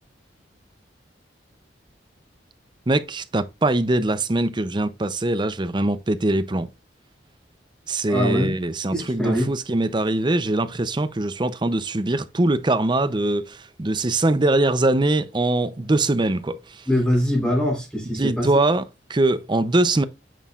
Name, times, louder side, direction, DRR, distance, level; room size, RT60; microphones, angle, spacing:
voice 1, 2.9-6.7 7.9-16.6 18.2-18.8 19.1-20.0, right 2 dB, 25° right, 0.6 m, -22 dB
voice 2, 8.1-8.6 8.9-9.5 16.9-18.5, equal, 5° left, 3.8 m, -23 dB
9.2 x 6.3 x 2.4 m
head